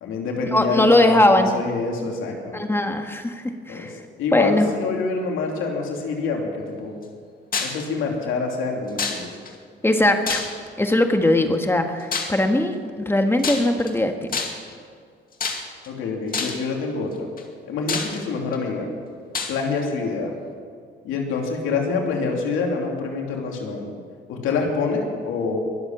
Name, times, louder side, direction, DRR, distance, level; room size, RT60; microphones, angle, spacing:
voice 1, 0.0-2.6 3.7-6.9 7.6-9.3 15.9-17.3 17.7-18.9 19.5-20.3 21.0-23.9 24.3-25.6, left 4 dB, 90° left, 1 dB, 2.8 m, -26 dB
voice 2, 0.5-1.5 2.5-3.9 4.3-4.7 9.8-10.5 10.8-14.2, left 1 dB, 10° left, 5 dB, 1.6 m, -20 dB
sound 1, 7.5-7.8 9.0-9.5 10.3-10.8 12.1-12.4 13.4-13.9 14.3-14.7 15.4-15.9 16.3-16.7 17.4-17.5 17.9-18.6 19.3-19.6, left 5 dB, 45° left, 2.2 m, -27 dB
22.0 x 7.9 x 7.3 m, 2.1 s
cardioid pair, 90°, 20 cm